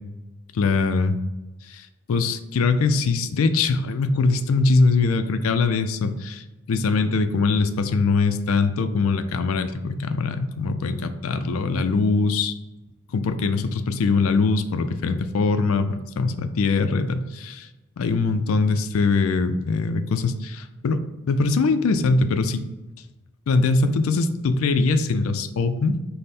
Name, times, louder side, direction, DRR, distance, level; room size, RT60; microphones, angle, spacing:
voice 1, 0.5-1.2 1.7-12.5 13.1-17.7 18.0-21.0 21.3-22.6 23.5-26.0, left 3 dB, 90° left, 10 dB, 0.4 m, -22 dB
5.3 x 2.1 x 4.2 m, 1.1 s
head